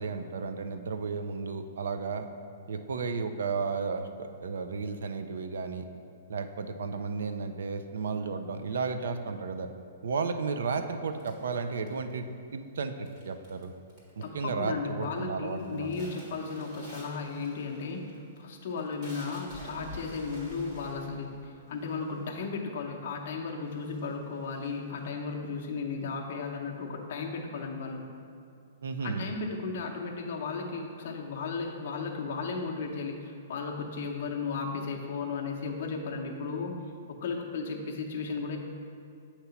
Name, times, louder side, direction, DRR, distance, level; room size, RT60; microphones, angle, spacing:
voice 1, 0.0-2.3 2.7-5.8 6.3-9.7 10.0-12.3 12.5-13.7 14.2-15.9 28.8-29.3, right 4 dB, 75° right, 8 dB, 0.4 m, -33 dB
sound 1, 11.2-12.3 13.1-13.6 13.9-14.4 14.8-15.2 15.5-22.6 23.2-23.3 23.6-25.2, equal, 30° right, 1.6 m, -49 dB
voice 2, 14.2-28.1 29.0-36.8 37.1-38.6, left 4 dB, 45° left, 1 dB, 0.7 m, -35 dB
8.0 x 2.9 x 5.7 m, 2.4 s
hypercardioid pair, 180°, 0 cm